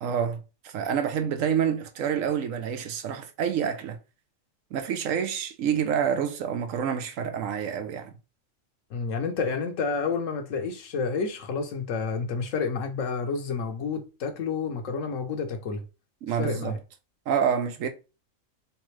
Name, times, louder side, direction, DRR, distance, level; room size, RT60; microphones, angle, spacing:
voice 1, 0.0-4.0 4.7-8.1 16.2-16.8 17.3-17.9, right 8 dB, 75° right, 1.0 m, -28 dB
voice 2, 8.9-15.8 16.3-16.8, left 5 dB, 70° left, 1.1 m, -30 dB
3.6 x 3.3 x 3.1 m
omnidirectional pair, 1.4 m